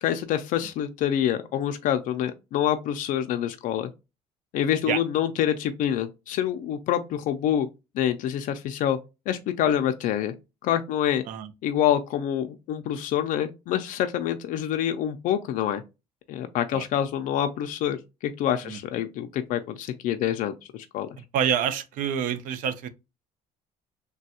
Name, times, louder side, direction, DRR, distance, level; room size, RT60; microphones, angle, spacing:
voice 1, 0.0-3.9 4.5-7.7 7.9-9.0 9.3-10.3 10.6-11.2 11.6-15.8 16.3-21.1, left 10 dB, 65° left, 0.4 m, -26 dB
voice 2, 21.3-22.9, right 8 dB, 65° right, 0.5 m, -27 dB
3.3 x 2.2 x 2.7 m
cardioid pair, 145°, 15 cm